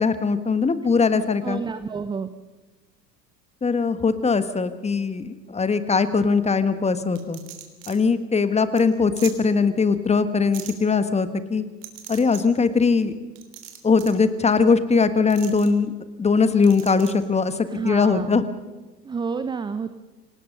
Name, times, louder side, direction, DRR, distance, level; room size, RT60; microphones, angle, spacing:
voice 1, 0.0-1.6 3.6-7.4 7.9-11.6 12.1-13.1 13.8-15.9 16.2-17.5 17.8-18.4, left 4 dB, 15° left, 12 dB, 1.4 m, -20 dB
voice 2, 1.4-2.3 17.7-18.4 19.0-19.9, right 5 dB, 10° right, 11 dB, 0.7 m, -29 dB
sound 1, 7.1-7.9 8.4-8.5 8.8-8.9 9.2-9.3 10.5-10.7 11.8-12.4 13.3-14.2 15.3-15.7 16.6-17.1, right 13 dB, 50° right, 3.4 m, -39 dB
27.0 x 18.5 x 5.5 m, 1.2 s
figure-of-eight pair, 85°, 50 cm